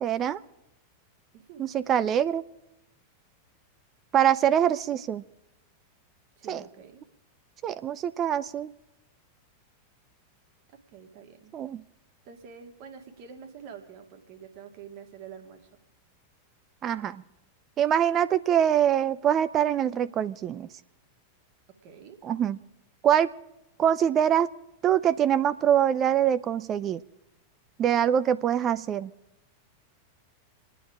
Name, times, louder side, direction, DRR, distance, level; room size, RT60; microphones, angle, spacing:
voice 1, 0.0-0.4 1.6-2.4 4.1-5.2 6.5-6.6 7.6-8.7 11.5-11.8 16.8-17.2 17.8-20.7 22.2-22.6 23.0-23.3 23.8-24.5 24.8-27.0 27.8-29.1, right 9 dB, 30° right, 15 dB, 0.5 m, -24 dB
voice 2, 1.3-1.7 6.4-7.0 10.9-11.5 12.2-15.8 21.8-22.2, right 7 dB, 45° right, 5 dB, 2.2 m, -47 dB
27.5 x 9.8 x 4.9 m, 0.90 s
figure-of-eight pair, 90°, 0 cm